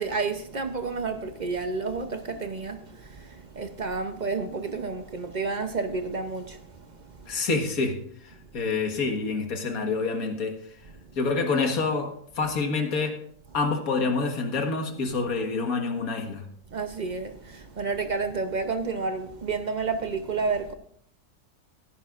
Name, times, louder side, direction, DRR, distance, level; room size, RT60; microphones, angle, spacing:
voice 1, 0.0-6.9 7.2-7.3 16.7-20.7, right 4 dB, 50° right, 0.5 m, -30 dB
voice 2, 7.3-7.9 8.5-10.5 11.2-12.1 12.4-13.1 13.5-16.4, left 4 dB, 55° left, 1.9 m, -27 dB
16.5 x 10.5 x 2.5 m
omnidirectional pair, 1.8 m